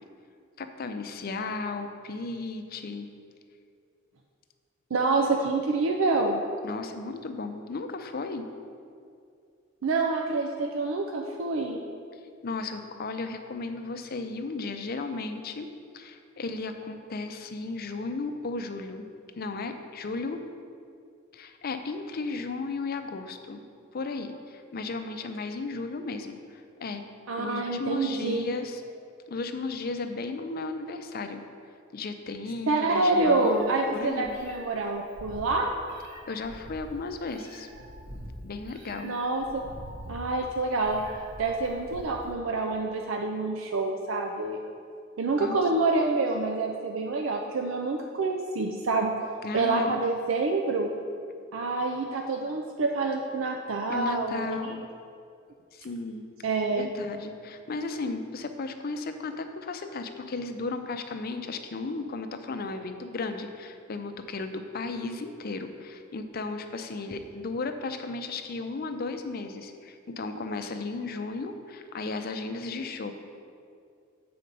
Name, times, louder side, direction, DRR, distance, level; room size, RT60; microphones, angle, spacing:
voice 1, 0.6-3.1 6.6-8.5 12.4-19.1 19.4-20.5 21.3-23.6 23.9-27.0 27.4-28.8 29.3-31.4 31.9-34.4 36.2-37.7 38.4-39.1 45.4-45.6 49.4-50.0 53.9-54.8 55.7-56.2 56.8-73.1, left 3 dB, 50° left, 7 dB, 0.5 m, -35 dB
voice 2, 4.9-6.4 9.8-11.8 27.3-28.5 32.7-35.7 39.0-39.6 40.1-41.0 41.4-44.6 45.2-49.1 49.5-50.9 51.5-54.5 56.4-56.9, right 3 dB, 85° right, 2 dB, 0.5 m, -27 dB
Meow, 32.9-42.3, equal, 60° right, 1.6 m, -45 dB
7.9 x 4.2 x 5.3 m, 2.4 s
head